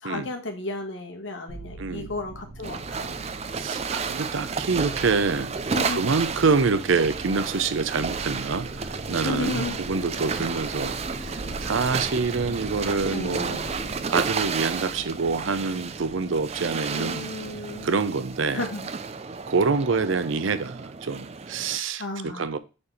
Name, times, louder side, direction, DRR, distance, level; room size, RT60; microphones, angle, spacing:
voice 1, 0.0-3.2 5.7-6.0 9.2-9.8 13.1-13.7 16.9-17.9 18.5-18.9 22.0-22.5, left 2 dB, 70° left, 1.6 m, -33 dB
sound 1, 1.5-18.9 19.2-20.0, right 3 dB, 15° right, 3.9 m, -44 dB
voice 2, 1.8-2.1 3.5-13.6 14.1-17.3 17.8-18.6 19.5-22.6, right 4 dB, 80° right, 0.6 m, -26 dB
sound 2, 2.4-13.9, left 1 dB, 10° left, 2.0 m, -43 dB
sound 3, 2.6-21.8, right 5 dB, 35° right, 0.5 m, -32 dB
6.6 x 4.3 x 4.2 m
head